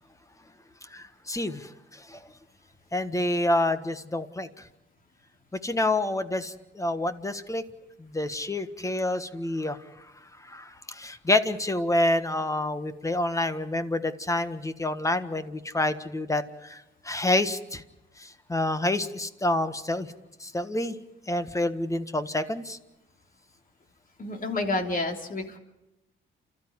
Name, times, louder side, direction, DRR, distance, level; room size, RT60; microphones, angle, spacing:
voice 1, 0.9-1.7 2.1-2.2 2.9-4.5 5.6-7.6 8.0-9.8 10.5-16.8 17.0-17.8 18.2-20.1 20.4-20.9 21.3-22.8, left 1 dB, 15° left, 11 dB, 1.5 m, -28 dB
voice 2, 24.2-25.6, left 2 dB, 45° left, 4 dB, 3.4 m, -29 dB
29.5 x 13.5 x 9.8 m, 0.95 s
cardioid pair, 90°, 20 cm